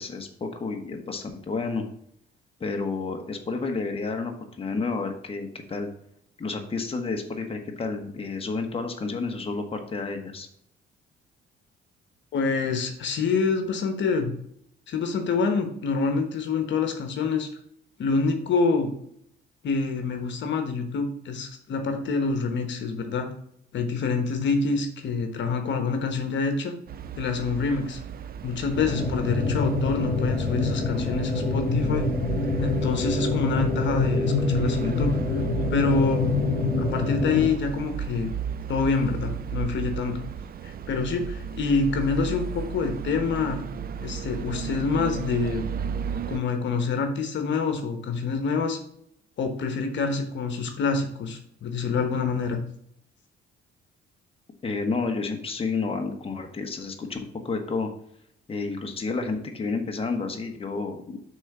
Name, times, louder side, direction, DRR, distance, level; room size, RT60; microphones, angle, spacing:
voice 1, 0.0-1.8 2.6-5.9 6.4-10.5 54.6-57.9 58.5-61.2, left 4 dB, 30° left, 3 dB, 1.2 m, -30 dB
voice 2, 12.3-14.3 14.9-17.5 18.0-18.9 19.6-23.3 23.7-26.7 27.1-28.0 28.4-32.1 32.6-35.2 35.7-36.3 36.8-38.3 38.7-40.2 40.6-43.6 44.0-45.6 46.3-48.8 49.4-52.6, left 4 dB, 65° left, 5 dB, 1.1 m, -26 dB
sound 1, 26.9-46.4, right 7 dB, 50° right, 0.5 m, -35 dB
sound 2, 28.7-37.5, left 3 dB, 45° left, 2.7 m, -26 dB
6.1 x 3.9 x 6.0 m, 0.71 s
cardioid pair, 90°, 20 cm